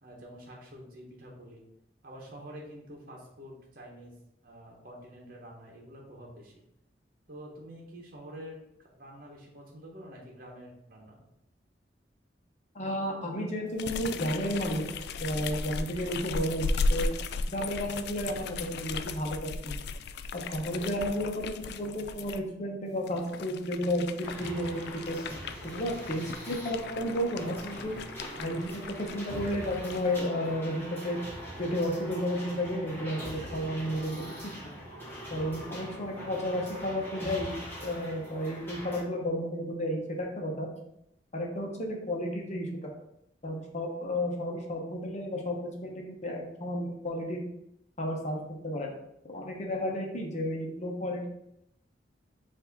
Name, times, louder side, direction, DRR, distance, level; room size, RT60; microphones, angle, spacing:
voice 1, 0.0-1.6 2.0-4.1 4.4-6.6 7.3-11.3, equal, 55° right, -2 dB, 1.0 m, -47 dB
voice 2, 12.7-17.1 17.5-19.8 20.3-25.2 25.6-27.9 28.4-31.2 31.6-34.4 34.6-34.7 35.3-40.7 41.3-42.7 43.4-47.4 48.0-48.9 49.2-51.3, equal, 40° left, 0 dB, 0.9 m, -32 dB
sound 1, 13.8-22.4 23.0-30.3, left 3 dB, 65° left, 0.3 m, -36 dB
sound 2, 24.2-39.0, equal, 15° left, 1.0 m, -42 dB
4.7 x 2.7 x 4.0 m, 0.79 s
head